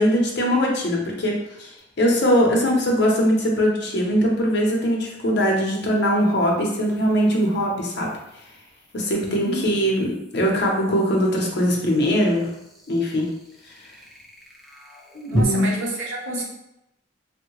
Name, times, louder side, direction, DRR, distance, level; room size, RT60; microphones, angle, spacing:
voice 1, 0.0-8.1 8.9-12.5 12.9-13.3 15.1-15.7, equal, 55° left, -1 dB, 0.7 m, -21 dB
sound 1, 1.8-1.9 5.3-15.4, equal, ahead, 0.3 m, -36 dB
voice 2, 9.2-9.7 15.3-16.4, right 1 dB, 75° right, -2 dB, 0.8 m, -29 dB
3.5 x 2.1 x 3.0 m, 0.86 s
head